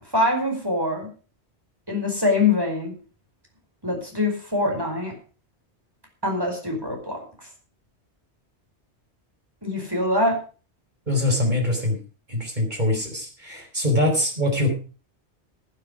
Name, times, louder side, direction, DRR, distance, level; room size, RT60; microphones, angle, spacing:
voice 1, 0.1-1.1 1.9-2.9 3.8-5.1 6.2-7.2 9.6-10.4, left 2 dB, 20° right, 2 dB, 4.9 m, -23 dB
voice 2, 11.1-12.0 12.3-14.7, left 1 dB, 40° right, 3 dB, 4.7 m, -23 dB
15.0 x 9.8 x 5.0 m, 0.36 s
omnidirectional pair, 1.1 m